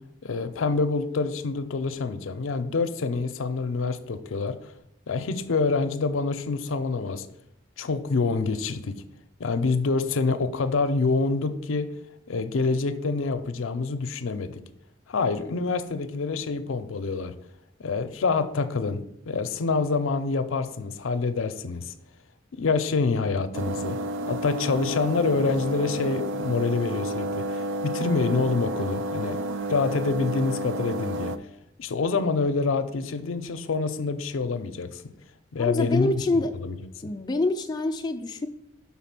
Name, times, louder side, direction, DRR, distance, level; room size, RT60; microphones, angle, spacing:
voice 1, 0.2-4.6 5.1-7.3 7.8-8.9 9.4-11.9 12.3-14.6 15.1-17.3 17.8-21.9 22.6-24.0 24.2-29.4 29.7-31.3 31.8-35.0 35.5-36.2 36.6-36.8, left 4 dB, 80° left, 10 dB, 0.5 m, -26 dB
sound 1, 23.5-31.4, right 1 dB, 75° right, 0.4 m, -31 dB
voice 2, 35.6-36.5 37.0-38.5, left 2 dB, 20° left, 5 dB, 0.3 m, -26 dB
5.8 x 4.1 x 5.9 m, 0.78 s
head